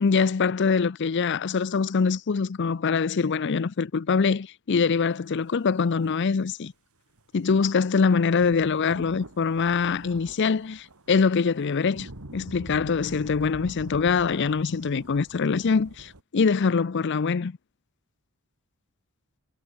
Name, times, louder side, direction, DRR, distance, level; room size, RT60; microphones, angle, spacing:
voice 1, 0.0-6.7 7.3-17.5, left 5 dB, 55° left, 0.5 m, -24 dB
sound 1, 7.2-16.2, right 1 dB, 85° right, 2.9 m, -45 dB
head